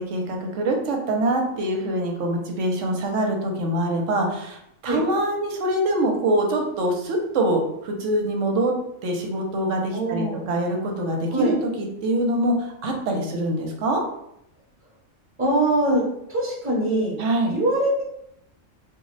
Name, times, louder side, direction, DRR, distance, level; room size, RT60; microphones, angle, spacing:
voice 1, 0.0-8.8 9.0-14.0 17.2-17.5, right 1 dB, 70° right, 2 dB, 0.9 m, -24 dB
voice 2, 9.9-10.5 11.3-11.5 15.4-16.0 16.3-17.2 17.5-18.0, right 1 dB, 10° right, -5 dB, 0.8 m, -22 dB
2.5 x 2.0 x 3.8 m, 0.77 s
omnidirectional pair, 1.4 m